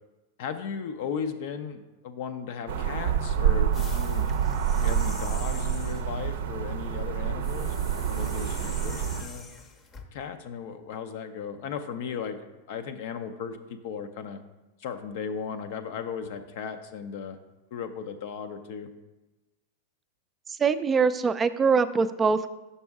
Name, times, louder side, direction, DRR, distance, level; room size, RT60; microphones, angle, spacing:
voice 1, 0.4-4.3 4.7-9.5 10.1-14.4 14.8-17.4 17.7-18.9, left 6 dB, 65° left, 8 dB, 0.5 m, -36 dB
sound 1, 2.7-9.2, right 8 dB, 70° right, 0.5 m, -27 dB
sound 2, 3.7-6.1 7.4-10.1, left 3 dB, 30° left, 0.7 m, -44 dB
voice 2, 20.6-22.5, right 5 dB, 20° right, 12 dB, 0.3 m, -23 dB
6.0 x 5.4 x 3.5 m, 1.1 s
hypercardioid pair, 105°, 0 cm